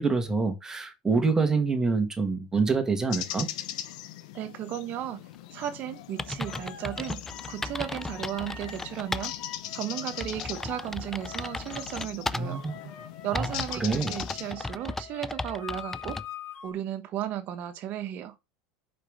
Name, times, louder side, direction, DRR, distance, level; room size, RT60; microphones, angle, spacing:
voice 1, 0.0-3.5 12.3-12.7 13.3-14.1, right 4 dB, 15° right, 1.9 m, -26 dB
sound 1, 3.1-14.5, left 13 dB, 75° left, 0.9 m, -40 dB
voice 2, 4.3-5.2 5.5-9.3 9.7-12.6 13.2-16.2 16.6-18.4, right 11 dB, 50° right, 1.3 m, -35 dB
sound 2, 5.7-5.8 6.2-9.3 9.7-9.8 10.2-12.7 13.3-16.3, left 2 dB, 10° left, 0.4 m, -36 dB
sound 3, 6.4-12.0 12.4-16.7, left 8 dB, 40° left, 2.1 m, -45 dB
5.5 x 5.2 x 5.2 m
supercardioid pair, 105°, 4 cm